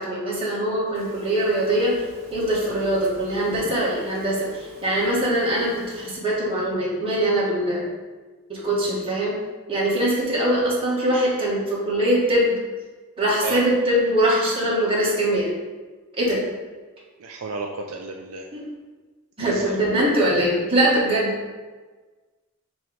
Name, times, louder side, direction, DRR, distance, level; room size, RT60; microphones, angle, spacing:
voice 1, 0.0-2.0 2.3-7.9 8.5-9.4 9.7-12.6 13.2-15.5 16.2-16.4 18.5-18.7 19.4-21.3, right 1 dB, 25° right, -6 dB, 1.8 m, -22 dB
Telephone, 0.9-6.2, left 6 dB, 45° right, 1.1 m, -42 dB
voice 2, 17.2-18.5 19.4-19.8, right 3 dB, 65° right, 1 dB, 0.5 m, -32 dB
6.2 x 3.1 x 5.2 m, 1.3 s
head